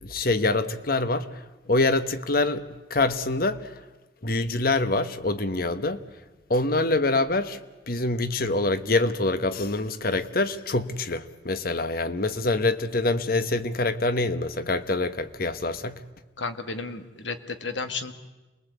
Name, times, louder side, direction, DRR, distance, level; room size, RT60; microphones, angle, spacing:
voice 1, 0.0-3.8 4.2-6.0 6.5-7.6 7.9-16.0, left 2 dB, 55° left, 1.2 m, -25 dB
voice 2, 16.4-18.1, left 4 dB, 90° left, 1.8 m, -33 dB
28.0 x 21.0 x 8.2 m
head